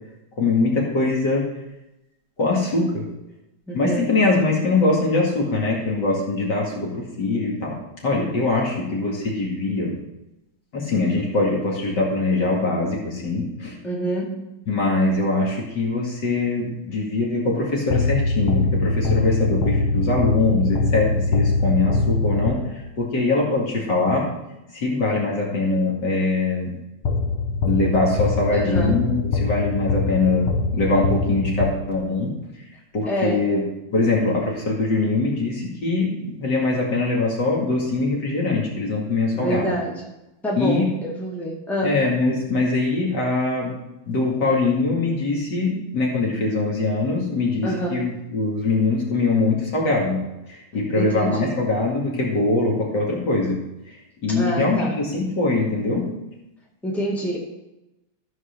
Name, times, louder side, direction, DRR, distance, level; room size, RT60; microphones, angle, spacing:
voice 1, 0.4-1.4 2.4-3.0 3.7-7.8 8.0-10.0 10.7-13.8 14.7-24.3 24.7-26.7 27.6-30.5 30.7-32.3 32.9-33.6 33.9-39.7 40.6-40.9 41.8-43.8 44.1-50.2 50.5-53.6 54.2-56.1, left 3 dB, 55° left, -2 dB, 2.8 m, -22 dB
voice 2, 3.7-4.1 13.8-14.5 28.5-29.0 33.1-33.5 39.4-40.0 40.4-42.0 47.6-48.0 50.9-51.6 54.3-55.0 56.8-57.4, right 1 dB, ahead, -4 dB, 2.0 m, -27 dB
sound 1, 17.9-23.0 27.0-32.3, left 3 dB, 85° left, 1.9 m, -23 dB
14.0 x 4.8 x 6.5 m, 0.95 s
omnidirectional pair, 2.2 m